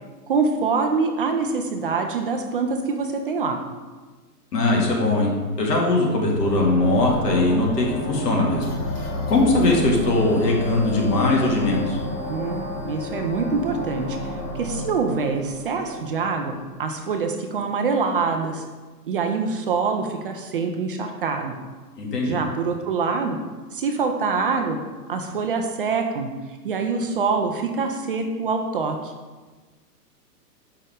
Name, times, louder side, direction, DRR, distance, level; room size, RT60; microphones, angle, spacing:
voice 1, 0.3-3.6 12.3-16.5 16.8-18.6 19.1-21.6 22.2-23.4 23.7-24.8 25.1-26.3 26.6-29.1, right 4 dB, 35° right, 4 dB, 0.5 m, -25 dB
voice 2, 4.5-5.3 5.6-8.7 9.0-12.0 22.0-22.4, left 2 dB, 75° left, -1 dB, 2.2 m, -20 dB
sound 1, 6.4-17.0, left 1 dB, 20° left, 1.5 m, -31 dB
7.2 x 5.5 x 3.6 m, 1.3 s
hypercardioid pair, 150°, 48 cm